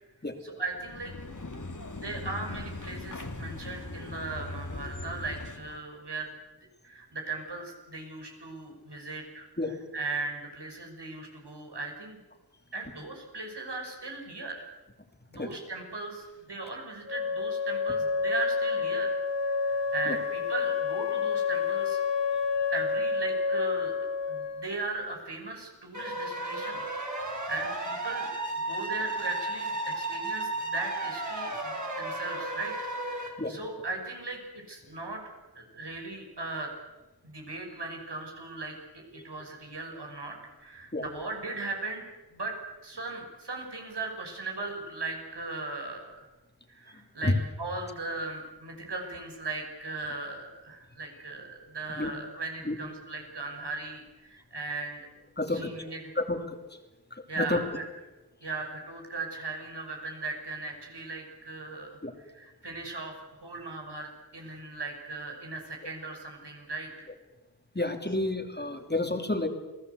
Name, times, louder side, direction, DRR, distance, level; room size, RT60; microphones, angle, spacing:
voice 1, 0.4-1.1 1.9-6.3 6.8-9.5 9.9-12.2 12.7-14.7 15.3-19.2 19.4-22.0 22.7-23.9 24.3-26.8 27.5-28.3 28.6-34.4 34.7-35.2 35.5-36.7 37.2-42.0 42.3-46.2 46.7-47.3 47.6-55.0 55.5-56.1 57.3-57.9 58.4-62.0 62.3-67.1, right 3 dB, 75° right, 2 dB, 6.0 m, -38 dB
sound 1, 0.7-5.8, left 2 dB, 45° left, 2.6 m, -40 dB
Wind instrument woodwind instrument, 17.1-24.8, left 5 dB, 90° left, 1.8 m, -29 dB
Air Horn, 25.9-33.3, right 2 dB, 45° right, 6.2 m, -34 dB
voice 2, 55.4-55.7 56.1-56.6 57.1-57.6 62.0-62.1 67.7-69.5, left 2 dB, 25° left, 5 dB, 2.9 m, -30 dB
28.0 x 18.5 x 8.2 m, 1.1 s
wide cardioid pair, 65°, 42 cm